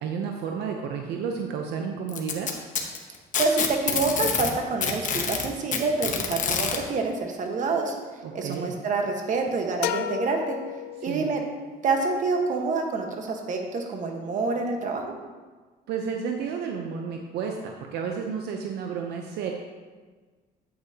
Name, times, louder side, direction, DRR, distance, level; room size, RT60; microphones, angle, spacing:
voice 1, 0.0-2.5 8.2-8.7 11.0-11.3 15.9-19.5, right 6 dB, 80° right, 2 dB, 0.8 m, -31 dB
Packing tape duct tape, 2.1-4.5 4.8-6.8 7.9-8.0 8.5-8.6 9.5-9.6, left 7 dB, 50° left, 1.1 m, -26 dB
voice 2, 3.4-7.9 8.3-10.6 11.0-11.4 11.8-15.1, right 4 dB, 50° right, 2 dB, 1.4 m, -27 dB
sound 1, 9.8-11.6, left 11 dB, 70° left, 0.4 m, -32 dB
8.9 x 8.6 x 2.9 m, 1.4 s
cardioid pair, 110°, 17 cm